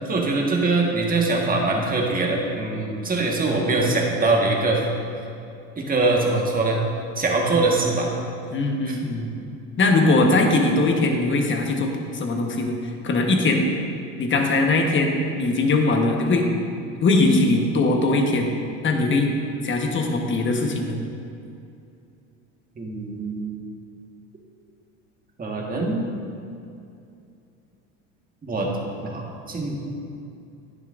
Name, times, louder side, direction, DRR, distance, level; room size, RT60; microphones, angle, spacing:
voice 1, 0.1-4.8 5.8-6.8 7.2-8.1 8.9-9.0 22.8-23.5 25.4-26.2 28.4-28.7 29.0-29.8, right 3 dB, 25° right, -1 dB, 1.6 m, -23 dB
voice 2, 8.5-9.3 9.8-13.7 14.2-16.5 17.0-18.5 18.8-19.3 19.6-21.0, left 2 dB, 35° left, 2 dB, 1.3 m, -21 dB
10.5 x 9.3 x 2.6 m, 2.6 s
supercardioid pair, 100°, 35 cm